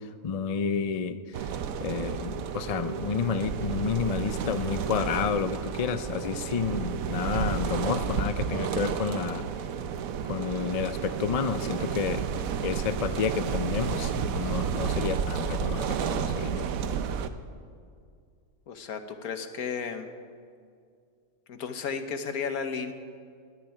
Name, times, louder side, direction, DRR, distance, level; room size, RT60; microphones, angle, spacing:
voice 1, 0.2-1.5 1.8-9.5 10.2-12.3 12.6-16.5, left 6 dB, 50° left, 11 dB, 0.4 m, -30 dB
sound 1, 1.3-17.3, right 7 dB, 75° right, 1.1 m, -31 dB
voice 2, 18.7-20.1 21.5-22.9, left 6 dB, 90° left, 8 dB, 1.6 m, -33 dB
19.0 x 6.9 x 9.9 m, 2.2 s
omnidirectional pair, 1.5 m